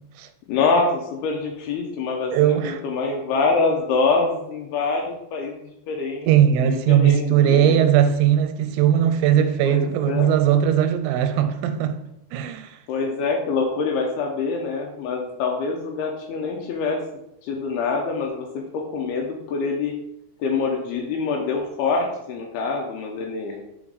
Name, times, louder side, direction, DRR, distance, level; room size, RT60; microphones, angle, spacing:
voice 1, 0.5-6.3 6.6-7.8 9.6-10.3 12.9-17.0 17.4-19.9 20.4-23.6, left 4 dB, 80° left, 2.4 m, -25 dB
voice 2, 2.3-2.8 6.3-12.0 12.3-12.8, right 10 dB, 90° right, 2.9 m, -19 dB
6.0 x 4.3 x 3.9 m
omnidirectional pair, 5.1 m